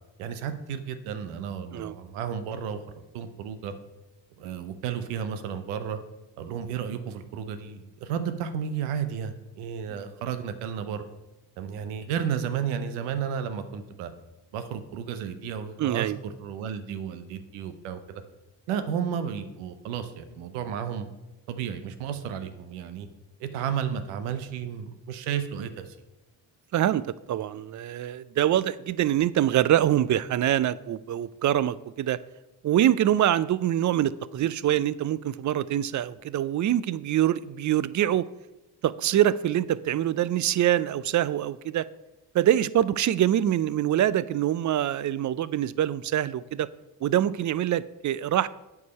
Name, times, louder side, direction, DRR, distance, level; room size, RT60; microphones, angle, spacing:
voice 1, 0.2-2.8 3.1-3.7 4.4-6.0 6.4-11.0 11.6-14.1 14.5-18.2 18.7-21.1 21.5-23.1 23.4-26.0, right 8 dB, 90° right, 10 dB, 0.7 m, -32 dB
voice 2, 15.8-16.2 26.7-32.2 32.6-38.3 38.8-41.9 42.3-46.7 47.0-48.5, right 11 dB, 40° right, 18 dB, 0.4 m, -24 dB
8.2 x 4.8 x 5.4 m, 1.0 s
hypercardioid pair, 45°, 49 cm